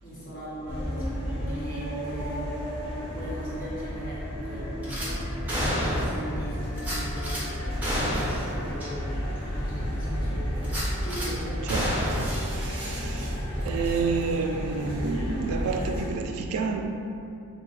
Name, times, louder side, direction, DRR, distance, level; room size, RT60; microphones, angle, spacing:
voice 1, 0.0-2.5 3.0-11.6, equal, 40° left, 1.2 m, -40 dB
sound 1, 0.7-16.1, equal, 25° left, 0.5 m, -32 dB
Gunshot gunfire / Glass, 4.8-5.1 5.5-6.2 6.8-7.4 7.8-8.5 8.8-8.9 9.4-9.5 10.6-11.3 11.7-13.5 13.8-14.0, equal, 5° right, 0.8 m, -30 dB
voice 2, 12.2-13.3 13.6-16.9, right 4 dB, 75° right, 0.3 m, -29 dB
3.2 x 2.2 x 4.1 m
head